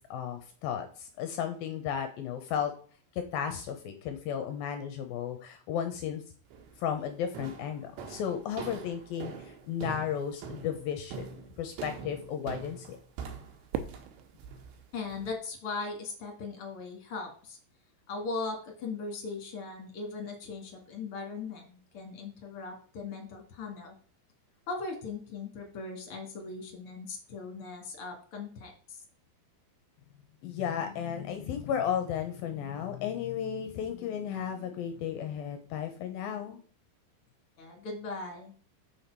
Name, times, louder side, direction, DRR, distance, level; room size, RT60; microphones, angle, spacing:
voice 1, 0.0-2.7 3.1-6.2 6.8-11.3 11.6-13.0 30.4-36.6, left 8 dB, 80° left, 6 dB, 2.2 m, -34 dB
sound 1, 6.5-6.9 7.4-15.3, right 5 dB, 75° right, 3.4 m, -44 dB
Fireworks, 13.7-16.0, right 9 dB, 90° right, 3.2 m, -41 dB
voice 2, 14.9-17.6 18.1-23.9 24.7-29.0 37.6-38.5, left 4 dB, 50° left, 3 dB, 1.8 m, -39 dB
7.1 x 6.6 x 4.6 m, 0.43 s
omnidirectional pair, 5.3 m